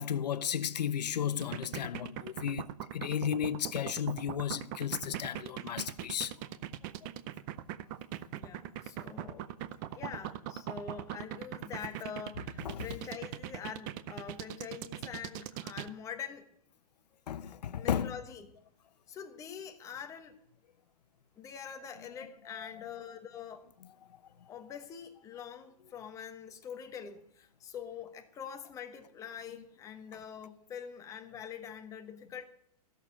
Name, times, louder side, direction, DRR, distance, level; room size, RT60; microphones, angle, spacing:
voice 1, 0.0-2.7 2.9-6.3 12.6-12.9 17.3-18.1 22.5-22.9, left 9 dB, 90° left, 0.8 m, -34 dB
sound 1, 1.4-15.9, right 13 dB, 30° right, 0.6 m, -40 dB
voice 2, 8.3-9.5 9.9-16.5 17.7-18.5 19.1-20.4 21.4-23.6 24.5-32.4, left 7 dB, 15° left, 1.2 m, -44 dB
15.5 x 6.7 x 9.8 m
hypercardioid pair, 155°, 20 cm